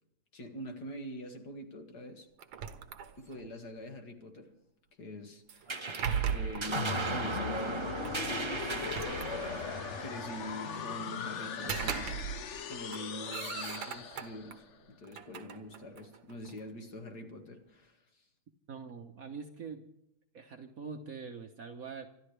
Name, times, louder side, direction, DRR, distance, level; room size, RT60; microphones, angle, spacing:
voice 1, 0.3-2.3 3.2-4.5 5.0-5.8 6.3-7.9 8.2-9.5 10.0-12.2 12.7-18.3, equal, 55° left, 4 dB, 2.4 m, -44 dB
sound 1, 2.4-3.5 5.5-6.8 8.0-8.2 8.7-9.8 11.4-12.6 12.9-14.6 15.0-16.7, right 8 dB, 70° right, 1.7 m, -38 dB
sound 2, 5.7-12.5, right 3 dB, 30° right, 0.5 m, -38 dB
sound 3, 6.8-14.6, left 7 dB, 70° left, 0.6 m, -39 dB
voice 2, 18.7-19.8 20.3-22.1, right 5 dB, 50° right, 5 dB, 1.2 m, -43 dB
26.0 x 13.0 x 3.3 m, 0.84 s
omnidirectional pair, 2.2 m